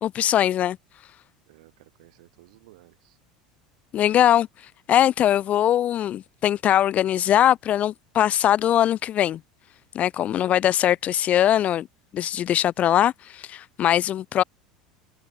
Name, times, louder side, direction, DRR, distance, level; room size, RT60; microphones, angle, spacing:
voice 1, 0.0-0.8 3.9-4.5 4.9-9.4 9.9-11.9 12.1-14.4, left 11 dB, 40° left, 0.5 m, -21 dB
voice 2, 1.5-3.2 10.3-10.6, right 20 dB, 65° right, 4.5 m, -54 dB
figure-of-eight pair, 75°, 4 cm